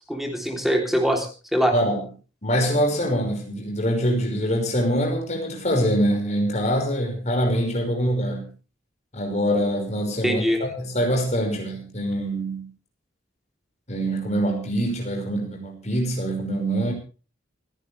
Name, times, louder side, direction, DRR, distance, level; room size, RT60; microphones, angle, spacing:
voice 1, 0.1-1.7 10.2-10.6, equal, ahead, 3.4 m, -23 dB
voice 2, 1.7-2.0 2.4-8.5 9.1-12.7 13.9-16.9, equal, 35° left, 5.5 m, -24 dB
28.0 x 10.5 x 3.4 m
head